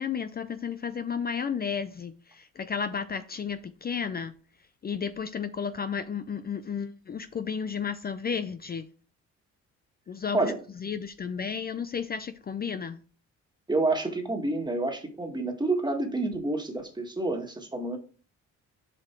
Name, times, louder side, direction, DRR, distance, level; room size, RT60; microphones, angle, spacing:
voice 1, 0.0-4.3 4.8-8.9 10.1-13.0, left 6 dB, 30° left, 0.5 m, -33 dB
voice 2, 13.7-18.0, right 2 dB, 15° right, 1.8 m, -28 dB
7.2 x 4.8 x 4.5 m
cardioid pair, 90°, 30 cm